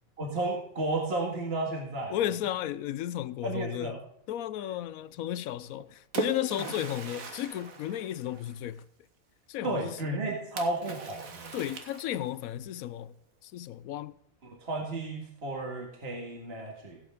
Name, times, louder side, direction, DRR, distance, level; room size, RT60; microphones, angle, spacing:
voice 1, 0.2-2.2 3.4-4.0 9.6-11.6 14.6-17.0, right 2 dB, 45° right, 2.0 m, -33 dB
voice 2, 2.1-4.0 4.3-8.8 9.5-10.0 11.5-13.1 13.4-14.1, left 12 dB, 90° left, 1.0 m, -34 dB
Splash splatter, 5.6-8.8 10.6-12.5, right 3 dB, 75° right, 1.9 m, -39 dB
16.5 x 8.3 x 3.7 m
omnidirectional pair, 1.4 m